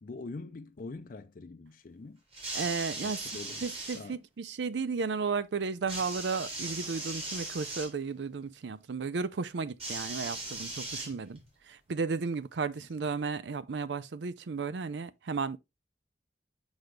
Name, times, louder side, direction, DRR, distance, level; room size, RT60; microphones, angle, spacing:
voice 1, 0.0-2.2 3.0-3.6 3.9-4.2 12.8-12.9, left 3 dB, 50° left, 0.5 m, -44 dB
sound 1, 2.3-4.0 5.9-7.9 9.8-11.5 12.5-12.6, right 2 dB, 35° right, 2.2 m, -38 dB
voice 2, 2.5-3.2 3.6-11.4 11.7-15.6, right 4 dB, 75° right, 0.5 m, -34 dB
6.2 x 5.1 x 3.3 m
head